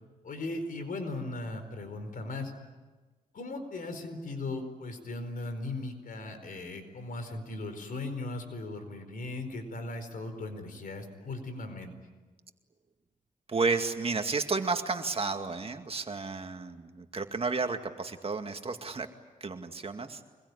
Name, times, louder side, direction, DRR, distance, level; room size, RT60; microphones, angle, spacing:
voice 1, 0.2-2.5 3.3-11.9, left 2 dB, 70° left, 8 dB, 4.6 m, -38 dB
voice 2, 13.5-19.1 19.4-20.2, right 4 dB, 40° right, 6 dB, 2.2 m, -32 dB
25.5 x 22.0 x 9.9 m, 1.3 s
cardioid pair, 75°, 15 cm